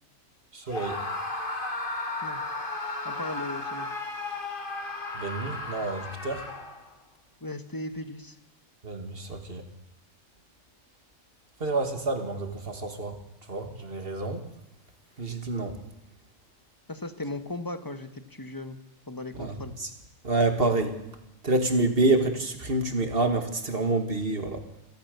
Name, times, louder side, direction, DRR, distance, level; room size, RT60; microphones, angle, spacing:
voice 1, 0.5-0.9 5.1-6.4 8.8-9.6 11.6-13.1 13.5-14.4 15.2-15.7 19.4-19.9 20.2-20.9 21.4-24.6, right 2 dB, 45° right, 6 dB, 2.5 m, -27 dB
Screaming, 0.7-6.9, left 2 dB, 40° left, 2.5 m, -34 dB
voice 2, 3.0-3.9 7.4-8.4 16.9-18.8 19.1-19.7, left 2 dB, 15° left, 9 dB, 1.4 m, -37 dB
29.5 x 13.5 x 6.9 m, 0.90 s
omnidirectional pair, 1.4 m